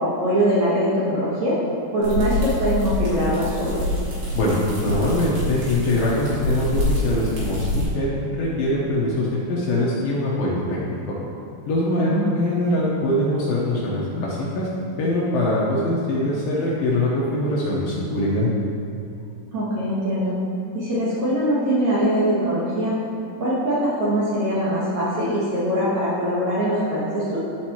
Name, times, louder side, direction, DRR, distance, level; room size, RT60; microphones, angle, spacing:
voice 1, 0.0-1.6 1.9-3.9 12.0-12.3 19.5-20.4 20.7-22.9 23.4-27.4, equal, 85° right, -9 dB, 1.6 m, -22 dB
sound 1, 2.0-7.8, left 1 dB, 60° right, 3.6 m, -26 dB
voice 2, 4.3-11.1 11.7-14.7 15.0-18.5, left 1 dB, 75° left, -7 dB, 2.2 m, -23 dB
12.5 x 5.3 x 3.0 m, 2.7 s
omnidirectional pair, 5.3 m